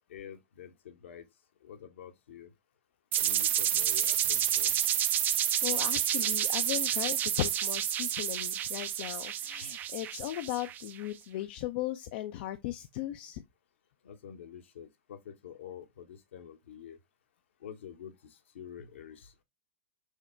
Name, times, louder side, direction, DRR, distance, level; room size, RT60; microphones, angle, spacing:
voice 1, 0.1-1.3 1.6-2.5 3.2-4.8 9.6-9.7 14.0-17.0 17.6-19.3, left 8 dB, 70° left, 0.9 m, -47 dB
sound 1, 3.1-10.9, right 10 dB, 30° right, 0.4 m, -29 dB
voice 2, 5.6-13.4, left 14 dB, 55° left, 0.4 m, -37 dB
6.4 x 2.1 x 3.2 m
hypercardioid pair, 100°, 7 cm